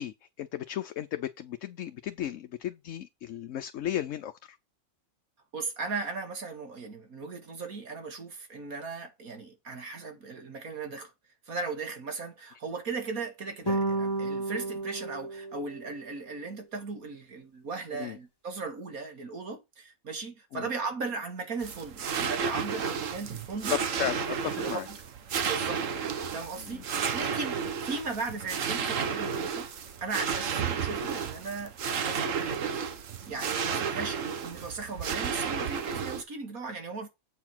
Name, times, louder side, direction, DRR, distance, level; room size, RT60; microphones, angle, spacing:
voice 1, 0.0-4.6 17.9-18.2 20.5-20.7 23.7-24.9 26.6-26.8, left 11 dB, 65° left, 1.0 m, -35 dB
voice 2, 5.5-11.1 11.5-23.7 24.6-25.0 25.5-26.8 27.1-29.7 30.0-32.8 33.3-37.1, right 4 dB, 85° right, 2.5 m, -37 dB
sound 1, 13.7-16.2, right 2 dB, 20° left, 1.2 m, -32 dB
sound 2, 21.6-36.2, right 6 dB, 65° right, 1.4 m, -32 dB
8.1 x 4.7 x 5.7 m
omnidirectional pair, 1.5 m